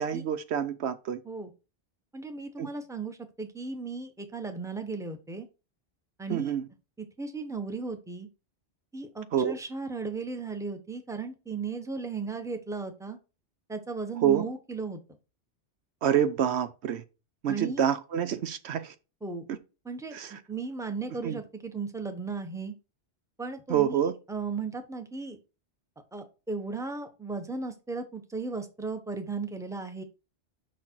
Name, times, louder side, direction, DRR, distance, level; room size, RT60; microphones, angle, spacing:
voice 1, 0.0-1.2 2.6-2.7 6.3-6.7 9.3-9.6 14.2-14.5 16.0-17.0 17.4-18.9 19.5-19.6 20.1-20.4 21.2-21.4 23.7-24.1, right 9 dB, 70° right, 0.9 m, -27 dB
voice 2, 2.1-5.5 6.2-6.5 7.0-8.3 8.9-13.2 13.7-15.0 17.5-17.8 19.2-19.4 19.8-22.7 23.4-25.4 26.1-30.0, right 4 dB, 5° right, 1.0 m, -36 dB
6.3 x 5.8 x 4.6 m
omnidirectional pair, 1.2 m